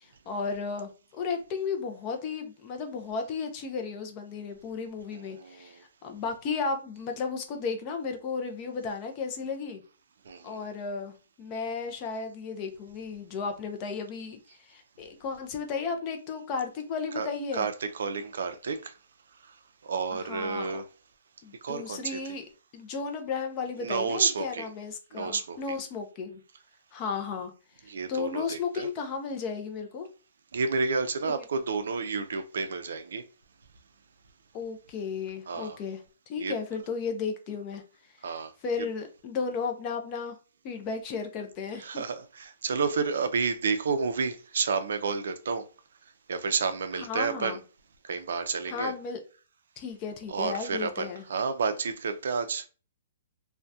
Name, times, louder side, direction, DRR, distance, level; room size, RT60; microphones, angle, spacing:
voice 1, 0.0-9.8 10.4-17.7 20.1-20.8 21.4-22.4 22.7-26.4 26.9-27.5 27.8-30.1 31.3-31.5 34.5-36.0 36.3-37.8 38.3-40.4 40.6-42.0 42.7-42.8 46.9-47.6 48.7-49.2 49.8-51.3, left 5 dB, 25° left, 0.4 m, -34 dB
voice 2, 18.0-18.8 19.9-20.8 21.6-22.2 23.8-24.7 25.1-25.6 27.9-28.9 30.5-33.2 35.5-35.8 36.4-36.5 38.2-38.5 41.9-42.2 42.6-45.6 46.3-47.6 48.1-48.9 50.3-51.0 51.3-52.6, right 5 dB, 75° right, 0.4 m, -30 dB
2.6 x 2.1 x 2.2 m
hypercardioid pair, 175°, 0 cm